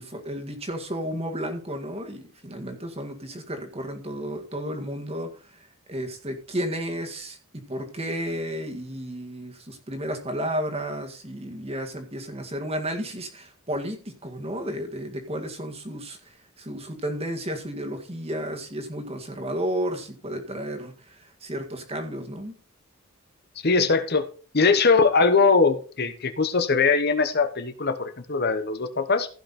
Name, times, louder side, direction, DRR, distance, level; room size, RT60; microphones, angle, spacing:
voice 1, 0.0-22.6, equal, 30° right, 4 dB, 1.9 m, -33 dB
voice 2, 23.6-24.3 24.5-29.3, left 4 dB, 50° left, 9 dB, 1.0 m, -21 dB
15.5 x 5.8 x 4.2 m, 0.37 s
head